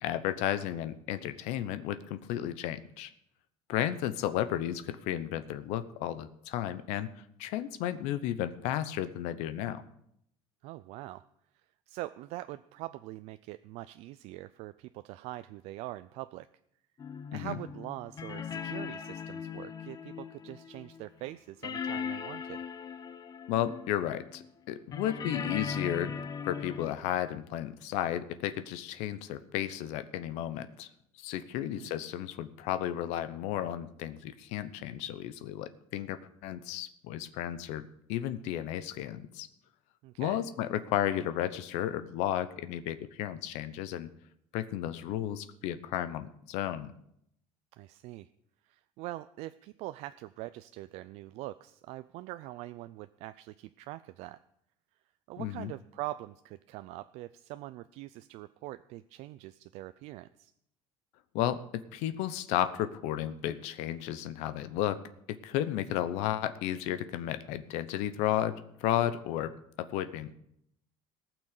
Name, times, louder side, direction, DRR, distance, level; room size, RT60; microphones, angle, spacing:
voice 1, 0.0-3.1 3.7-9.8 17.3-17.6 23.5-26.1 26.4-30.9 31.1-39.5 40.2-44.1 44.5-46.9 55.4-55.7 61.3-65.0 65.3-70.3, left 12 dB, 80° left, 13 dB, 0.8 m, -33 dB
voice 2, 10.6-11.2 11.5-16.5 17.3-22.6 31.7-31.9 40.0-40.4 47.8-48.3 48.6-54.4 55.3-60.5, right 17 dB, 70° right, 12 dB, 0.4 m, -43 dB
sound 1, 17.0-21.3 21.6-24.5 24.9-26.9, left 6 dB, 35° left, 0.8 m, -39 dB
18.0 x 6.1 x 6.6 m, 0.74 s
cardioid pair, 120°, 11 cm